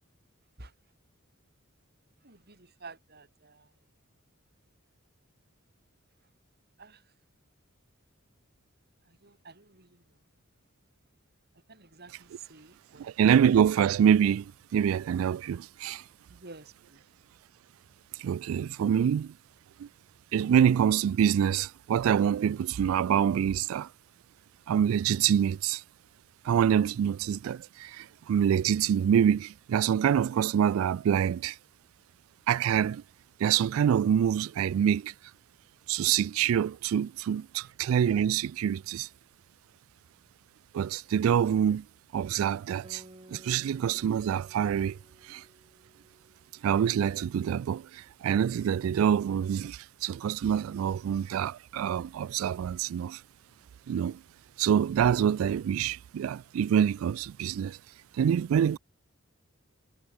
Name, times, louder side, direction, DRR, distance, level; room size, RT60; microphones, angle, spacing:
voice 1, 2.2-3.7 6.8-7.1 9.0-10.2 11.7-13.1 16.3-17.0, right 3 dB, 50° right, 4.5 m, -51 dB
voice 2, 13.0-16.1 18.1-19.3 19.8-19.9 20.3-23.9 24.7-25.8 26.4-31.6 32.5-33.0 33.4-35.1 35.9-39.1 40.7-41.9 42.1-43.0 43.3-45.5 46.6-53.2 53.9-54.2 54.6-57.8 58.1-58.8, right 8 dB, 85° right, 0.3 m, -26 dB
Guitar, 42.8-47.8, right 1 dB, 25° right, 4.5 m, -56 dB
head